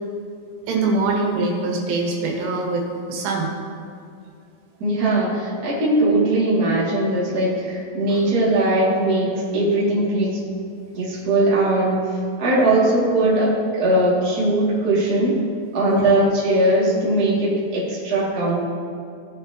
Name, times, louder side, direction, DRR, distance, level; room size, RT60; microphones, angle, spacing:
voice 1, 0.7-3.5 15.9-16.1, right 3 dB, 90° right, -1 dB, 4.0 m, -23 dB
voice 2, 4.8-10.4 10.9-15.4 15.7-18.6, right 1 dB, 30° right, -7 dB, 1.7 m, -20 dB
17.0 x 6.7 x 2.9 m, 2.4 s
omnidirectional pair, 5.4 m